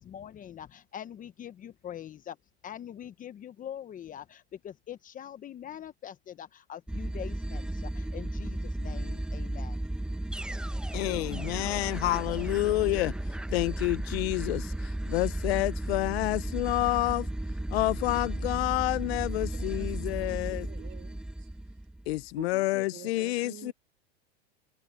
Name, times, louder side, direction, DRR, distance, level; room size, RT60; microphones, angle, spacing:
voice 1, 0.0-2.4 2.6-9.8, left 10 dB, 25° left, 1.1 m, -43 dB
sound 1, 6.9-22.2, right 1 dB, 5° right, 1.0 m, -34 dB
voice 2, 10.9-13.2 13.5-17.3 17.7-20.7 22.1-23.7, left 19 dB, 70° left, 0.6 m, -29 dB
voice 3, 19.5-21.5 22.4-23.7, right 13 dB, 35° right, 3.2 m, -49 dB
supercardioid pair, 130°, 33 cm